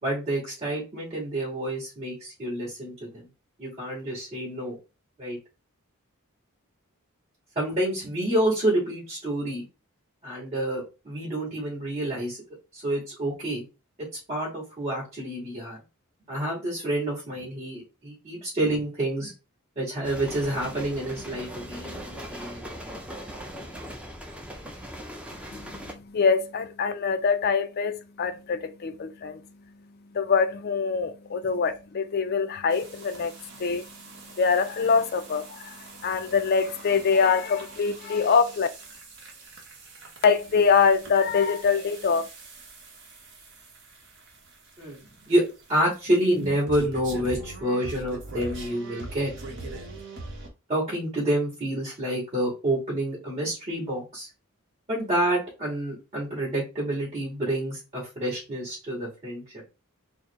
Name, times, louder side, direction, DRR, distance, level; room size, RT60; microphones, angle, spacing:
voice 1, 0.0-3.3 3.6-4.8 5.2-5.4 7.6-9.6 10.2-12.4 12.7-13.6 14.3-15.8 16.3-19.3 19.8-23.0 31.4-31.5 44.8-45.0 45.3-45.4 45.7-49.3 50.7-54.3 54.9-59.4, right 1 dB, 30° right, 2.2 m, -28 dB
sound 1, 20.0-25.9, equal, 5° right, 0.5 m, -39 dB
voice 2, 25.5-29.4 30.1-34.0 34.3-38.7 40.2-42.3, left 5 dB, 45° left, 0.4 m, -24 dB
sound 2, 32.7-50.5, right 3 dB, 55° right, 1.0 m, -43 dB
4.2 x 2.0 x 3.6 m
head